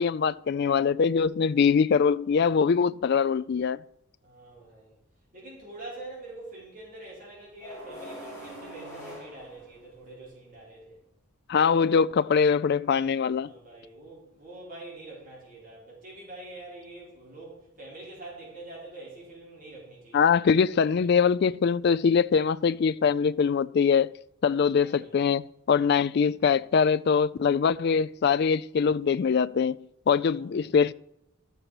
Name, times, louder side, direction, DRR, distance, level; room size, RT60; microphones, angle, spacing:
voice 1, 0.0-3.8 11.5-13.5 20.1-24.1 24.4-30.9, left 6 dB, 50° left, 0.3 m, -23 dB
voice 2, 4.2-4.9 5.3-11.0 13.3-20.9 24.8-25.1 30.4-30.7, right 2 dB, 40° right, 4.8 m, -45 dB
sound 1, 7.6-10.3, equal, 10° left, 5.3 m, -43 dB
13.0 x 6.8 x 6.0 m
head